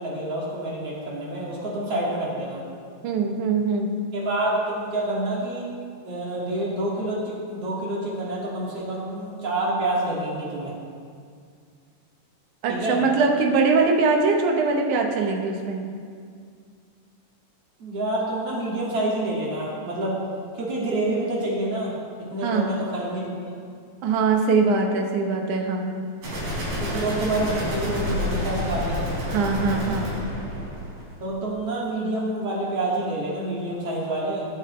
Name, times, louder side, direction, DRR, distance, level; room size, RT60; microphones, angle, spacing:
voice 1, 0.0-2.6 4.1-5.7 6.0-10.7 12.7-13.0 17.8-20.2 20.5-23.5 26.8-29.0 31.2-34.4, right 1 dB, 45° right, -5 dB, 3.1 m, -27 dB
voice 2, 3.0-4.0 12.6-15.9 22.4-22.7 24.0-26.0 29.3-30.2, right 4 dB, 70° right, 2 dB, 2.3 m, -22 dB
sound 1, 26.2-31.1, equal, 85° right, 5.1 m, -29 dB
21.0 x 7.1 x 3.2 m, 2.2 s
omnidirectional pair, 4.0 m